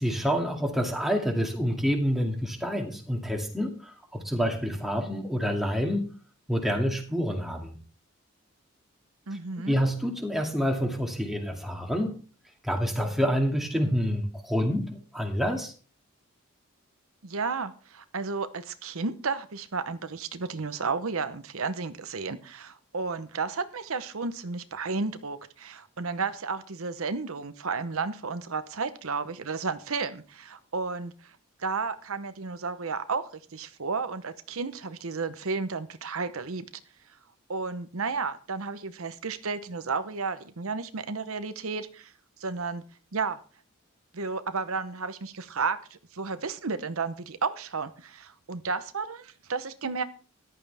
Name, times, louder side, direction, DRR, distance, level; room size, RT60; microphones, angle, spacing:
voice 1, 0.0-6.1 6.5-7.7 9.7-12.1 12.6-15.7, equal, ahead, 1 dB, 2.3 m, -27 dB
voice 2, 9.3-9.8 17.2-36.6 37.5-42.1 42.4-42.8 43.1-43.4 44.1-50.0, right 4 dB, 75° right, 11 dB, 0.9 m, -32 dB
14.5 x 11.5 x 3.5 m, 0.39 s
head